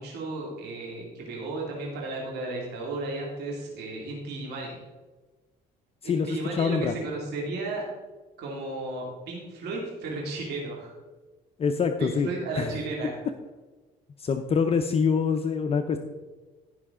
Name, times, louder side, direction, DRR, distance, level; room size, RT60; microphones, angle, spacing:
voice 1, 0.0-4.8 6.0-7.8 8.4-10.9 12.0-13.2, right 2 dB, 75° right, -2 dB, 2.4 m, -34 dB
voice 2, 6.0-6.9 11.6-12.8 14.2-16.0, left 5 dB, 35° left, 6 dB, 0.6 m, -25 dB
15.5 x 5.7 x 3.7 m, 1.3 s
cardioid pair, 110°, 17 cm